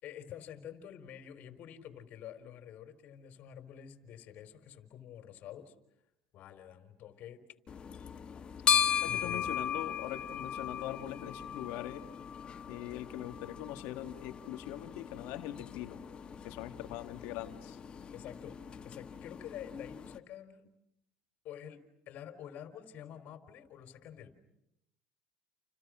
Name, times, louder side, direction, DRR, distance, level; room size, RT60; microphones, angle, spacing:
voice 1, 0.0-5.7 6.3-7.4 9.1-9.6 18.1-18.6 18.8-20.6 21.4-24.4, left 10 dB, 55° left, 8 dB, 4.3 m, -48 dB
sound 1, 7.7-20.2, left 8 dB, 30° left, 1.7 m, -37 dB
voice 2, 9.0-12.0 12.7-16.0 16.4-17.8, left 14 dB, 70° left, 7 dB, 2.4 m, -42 dB
30.0 x 30.0 x 6.5 m, 0.83 s
supercardioid pair, 110°, 3 cm